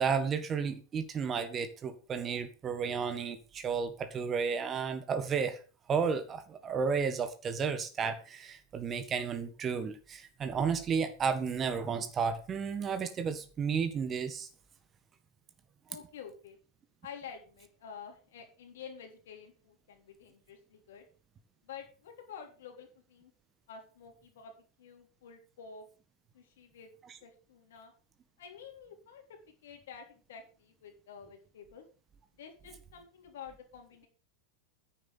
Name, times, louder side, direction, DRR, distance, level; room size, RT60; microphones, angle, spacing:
voice 1, 0.0-5.6 5.9-14.5, right 6 dB, 25° right, 1.5 m, -32 dB
voice 2, 15.9-16.6 17.0-21.1 21.6-23.3 23.7-25.8 26.3-26.9 27.2-27.9 28.4-31.8 32.4-34.1, left 7 dB, 60° left, 3.9 m, -49 dB
10.5 x 7.9 x 6.7 m
figure-of-eight pair, 90°, 0 cm